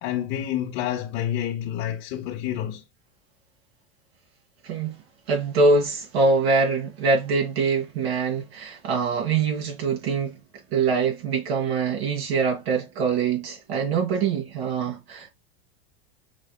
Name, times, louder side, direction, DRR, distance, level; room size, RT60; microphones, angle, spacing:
voice 1, 0.0-2.8, left 11 dB, 55° left, 0.9 m, -28 dB
voice 2, 4.6-5.0 5.3-10.4 10.7-15.3, right 4 dB, 70° right, 2.8 m, -24 dB
6.0 x 3.4 x 2.2 m
supercardioid pair, 130°, 31 cm